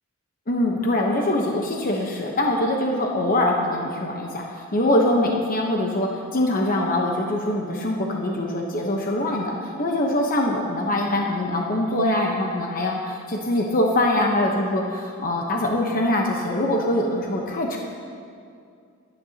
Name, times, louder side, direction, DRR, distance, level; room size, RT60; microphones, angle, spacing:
voice 1, 0.5-17.8, left 1 dB, 40° left, 0 dB, 1.0 m, -23 dB
26.5 x 10.0 x 2.9 m, 2.3 s
head